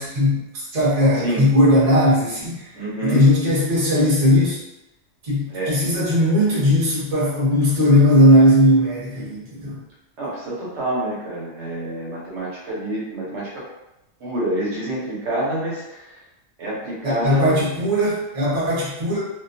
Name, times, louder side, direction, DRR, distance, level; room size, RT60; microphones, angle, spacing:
voice 1, 0.0-2.6 3.0-4.6 5.2-9.8 17.0-19.2, left 1 dB, 35° right, -8 dB, 0.9 m, -18 dB
voice 2, 1.1-1.4 2.7-3.3 5.5-5.8 10.2-13.6 14.2-16.1 16.6-17.5, right 1 dB, 65° right, -6 dB, 1.1 m, -27 dB
2.5 x 2.2 x 2.6 m, 0.94 s
omnidirectional pair, 1.3 m